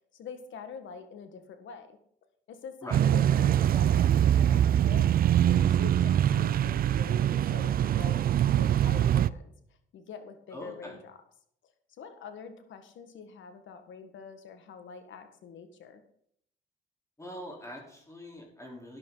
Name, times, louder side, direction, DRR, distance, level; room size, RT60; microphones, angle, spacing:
voice 1, 0.1-1.9 2.5-9.5 9.9-11.2 12.0-16.0, left 6 dB, 75° left, 8 dB, 1.8 m, -45 dB
sound 1, 2.9-9.3, right 10 dB, 50° right, 0.4 m, -23 dB
voice 2, 10.5-11.0 17.2-19.0, equal, 15° left, -1 dB, 3.8 m, -43 dB
12.5 x 11.0 x 4.0 m, 0.69 s
cardioid pair, 90°, 20 cm